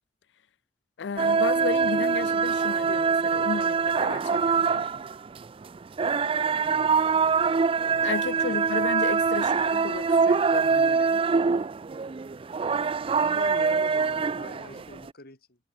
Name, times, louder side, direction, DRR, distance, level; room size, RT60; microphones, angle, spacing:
voice 1, 1.0-4.9 8.0-11.2, left 5 dB, 75° left, 0.5 m, -34 dB
sound 1, 1.2-15.1, right 5 dB, 30° right, 0.4 m, -24 dB
voice 2, 6.6-7.1 8.5-8.6 13.2-15.6, left 2 dB, 60° left, 5.6 m, -43 dB
head